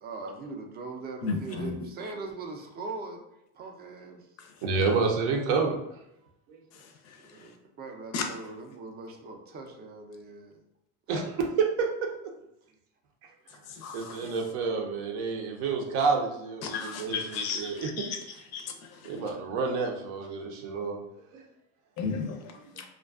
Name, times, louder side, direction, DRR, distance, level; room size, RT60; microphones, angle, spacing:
voice 1, 0.0-3.2 3.5-4.3 7.2-10.6, right 3 dB, 30° right, 0.4 m, -41 dB
voice 2, 1.2-1.7 8.1-8.2 13.7-14.2 16.6-18.2 18.5-19.2 22.0-22.8, left 5 dB, 50° left, 0.4 m, -34 dB
voice 3, 4.6-5.8 6.5-6.6 11.1-12.3 13.9-18.0 19.0-21.0 21.3-21.4 22.7-22.8, right 4 dB, 80° right, 0.7 m, -29 dB
2.4 x 2.2 x 2.4 m
supercardioid pair, 120°, 35 cm